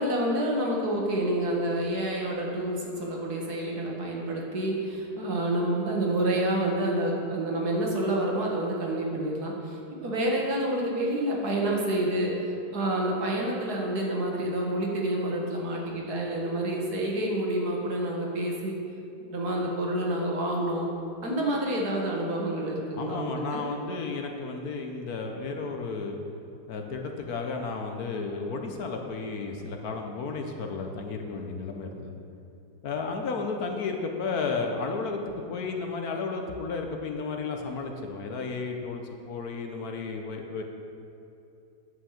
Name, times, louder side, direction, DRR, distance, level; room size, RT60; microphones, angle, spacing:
voice 1, 0.0-18.8 19.3-20.9 21.2-23.7, right 1 dB, 65° right, -1 dB, 1.9 m, -28 dB
voice 2, 22.9-26.2 26.7-32.2 32.8-40.6, left 4 dB, 65° left, 3 dB, 1.3 m, -33 dB
9.7 x 5.8 x 7.2 m, 2.7 s
omnidirectional pair, 1.9 m